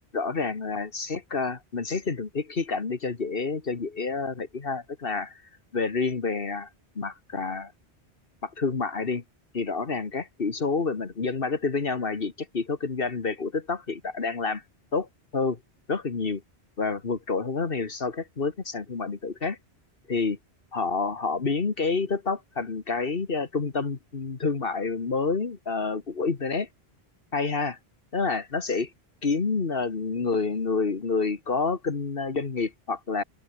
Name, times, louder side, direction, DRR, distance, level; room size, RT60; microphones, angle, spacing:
voice 1, 0.1-5.3 5.7-6.7 7.0-7.7 8.4-9.2 9.5-14.6 14.9-15.1 15.3-15.6 15.9-16.4 16.8-19.6 20.1-20.4 20.7-26.7 27.3-27.8 28.1-28.9 29.2-33.2, left 4 dB, 60° left, 1.8 m, -28 dB
open air
omnidirectional pair, 1.1 m